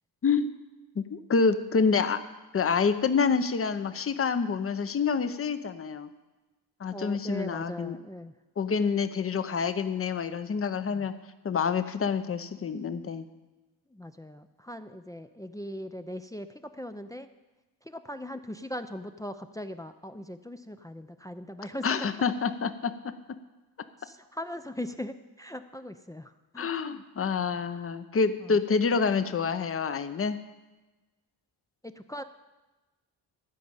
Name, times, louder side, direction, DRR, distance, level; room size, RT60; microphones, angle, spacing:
voice 1, 1.0-2.2 2.5-6.1 6.8-8.0 8.6-11.1 11.4-13.3 21.8-22.9 26.6-30.4, left 5 dB, 35° left, 11 dB, 0.8 m, -27 dB
voice 2, 6.9-8.3 13.9-17.3 17.8-22.1 24.0-26.7 28.4-28.6 31.8-32.2, left 1 dB, 10° left, 8 dB, 0.5 m, -40 dB
12.5 x 5.2 x 8.7 m, 1.1 s
cardioid pair, 80°, 40 cm